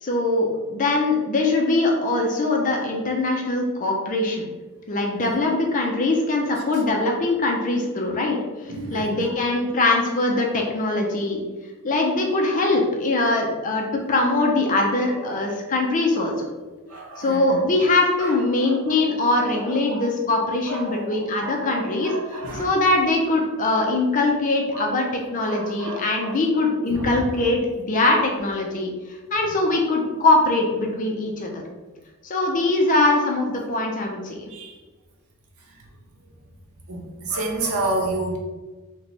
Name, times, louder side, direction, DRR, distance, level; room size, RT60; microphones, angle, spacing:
voice 1, 0.0-4.4 4.9-8.4 8.9-11.4 11.8-16.4 17.2-22.1 22.5-25.1 25.3-31.6 32.2-34.4, left 2 dB, 35° left, 1 dB, 0.5 m, -22 dB
voice 2, 8.7-9.4 15.0-15.5 16.9-17.7 18.2-20.1 20.6-22.7 23.8-24.0 24.7-25.1 25.4-26.4 26.9-27.5 34.5-34.8 35.6-35.9 36.9-38.4, right 2 dB, 90° right, 0 dB, 0.7 m, -32 dB
3.0 x 2.2 x 4.0 m, 1.2 s
head